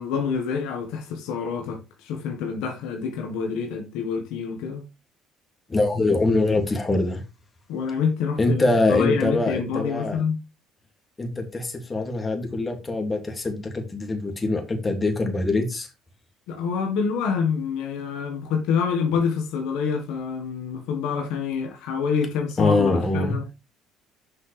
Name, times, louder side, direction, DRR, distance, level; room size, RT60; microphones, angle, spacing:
voice 1, 0.0-4.9 7.7-10.4 16.5-23.5, left 6 dB, 80° left, 1.6 m, -27 dB
voice 2, 5.7-7.2 8.4-10.2 11.2-15.9 22.6-23.3, left 2 dB, 25° left, 2.5 m, -23 dB
7.6 x 6.0 x 3.4 m
supercardioid pair, 90°, 0 cm